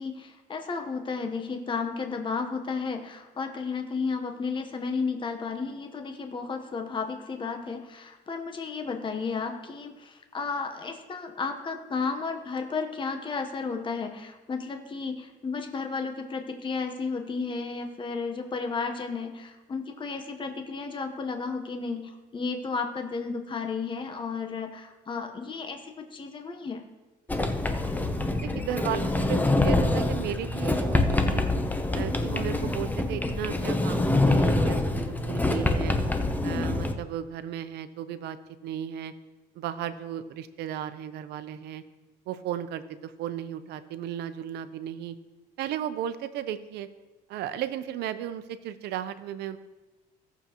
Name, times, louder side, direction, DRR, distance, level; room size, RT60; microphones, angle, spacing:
voice 1, 0.0-26.8, left 4 dB, 30° left, 5 dB, 1.0 m, -33 dB
Sliding door, 27.3-36.9, left 2 dB, 10° left, 0.8 m, -25 dB
voice 2, 28.4-31.4 31.9-35.9 36.4-38.4 38.6-39.1 39.5-41.8 42.3-45.1 45.6-46.9 47.3-49.6, right 10 dB, 75° right, 12 dB, 0.7 m, -35 dB
16.5 x 6.9 x 3.0 m, 1.2 s
cardioid pair, 110°, 17 cm